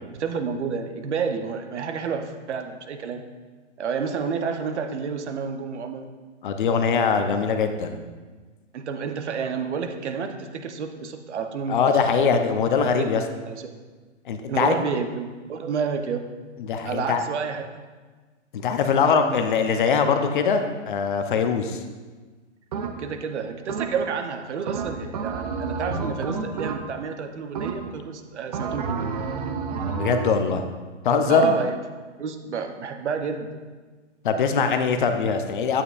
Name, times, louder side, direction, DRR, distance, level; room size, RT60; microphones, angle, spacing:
voice 1, 0.1-3.2 3.8-6.1 8.7-11.8 12.2-12.3 12.7-13.7 14.5-16.2 16.8-17.7 23.0-29.1 31.3-31.8 32.2-33.6, right 6 dB, 70° right, 6 dB, 0.9 m, -30 dB
voice 2, 6.4-8.0 11.7-13.2 14.3-14.7 16.6-17.2 18.5-21.8 29.9-30.6 31.0-31.6 34.2-35.8, left 5 dB, 45° left, 7 dB, 0.7 m, -22 dB
sound 1, 22.7-23.2 23.7-24.2 24.7-27.1 27.6-28.1 28.5-30.5, right 5 dB, 35° right, 0.5 m, -30 dB
9.2 x 8.8 x 2.5 m, 1.4 s
hypercardioid pair, 155°, 36 cm